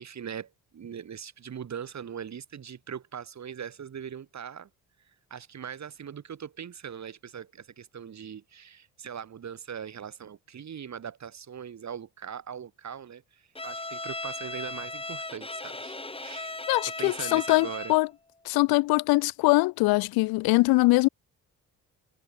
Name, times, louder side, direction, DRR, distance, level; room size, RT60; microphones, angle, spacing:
voice 1, 0.0-4.7 5.3-16.6 16.8-18.0, right 8 dB, 40° right, 1.5 m, -40 dB
Bowed string instrument, 13.5-18.1, left 2 dB, 10° left, 2.3 m, -37 dB
voice 2, 16.7-18.1 18.5-21.1, left 22 dB, 55° left, 0.5 m, -22 dB
hypercardioid pair, 45°, 44 cm